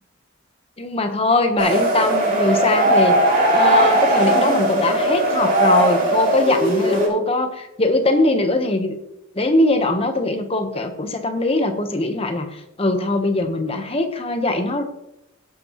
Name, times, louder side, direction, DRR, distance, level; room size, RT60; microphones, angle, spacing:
voice 1, 0.8-3.2 3.5-9.0 9.3-14.8, left 2 dB, 25° left, 6 dB, 1.0 m, -21 dB
sound 1, 1.6-7.1, right 1 dB, 40° right, 4.7 m, -18 dB
16.5 x 8.3 x 3.1 m, 0.85 s
head